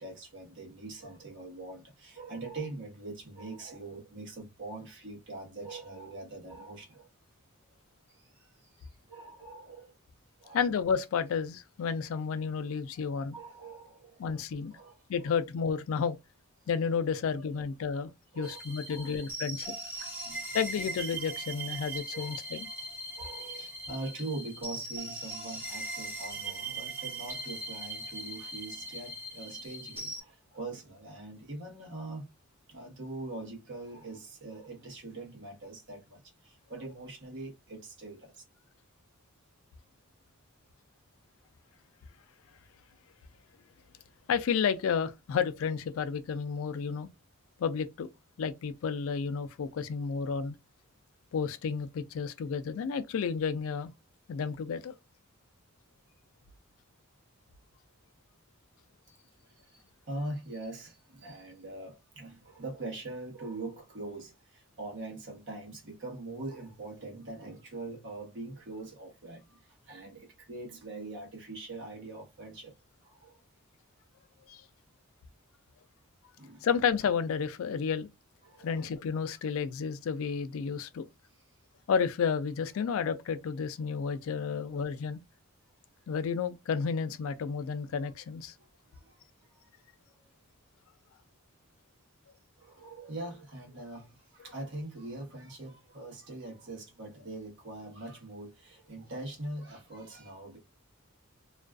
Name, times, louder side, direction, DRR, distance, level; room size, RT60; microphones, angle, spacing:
voice 1, 0.0-7.1 8.1-9.9 10.4-10.6 13.3-14.4 14.7-15.0 17.3-17.6 18.3-18.6 18.9-19.3 20.0-20.5 22.1-22.4 23.1-32.3 32.7-38.4 59.1-59.2 59.7-72.7 73.0-73.4 76.4-76.7 78.4-78.7 84.5-84.7 89.0-89.2 92.6-100.6, right 2 dB, 55° right, 1.0 m, -43 dB
voice 2, 10.5-13.4 14.2-14.8 15.1-16.2 16.7-19.8 20.5-22.7 44.3-47.1 47.6-48.1 48.4-50.6 51.3-53.9 54.3-54.9 74.5-74.6 76.6-78.1 78.6-81.1 81.9-85.2 86.1-88.5, left 6 dB, 65° left, 0.3 m, -31 dB
sound 1, 18.4-30.2, right 2 dB, 10° right, 1.1 m, -40 dB
2.4 x 2.2 x 2.3 m
head